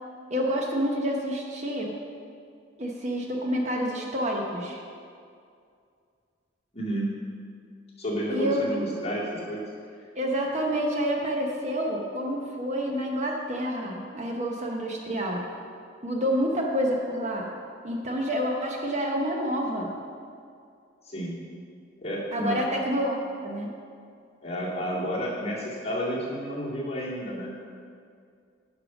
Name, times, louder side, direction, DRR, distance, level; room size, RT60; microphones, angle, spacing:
voice 1, 0.3-1.9 2.8-4.8 8.3-9.0 10.2-15.5 16.0-17.5 17.8-19.9 22.3-23.7, equal, 35° right, 0 dB, 0.9 m, -28 dB
voice 2, 6.7-7.1 8.0-9.6 21.0-21.3 22.0-22.6 24.4-27.5, equal, 30° left, -6 dB, 2.2 m, -31 dB
10.0 x 5.6 x 6.0 m, 2.3 s
head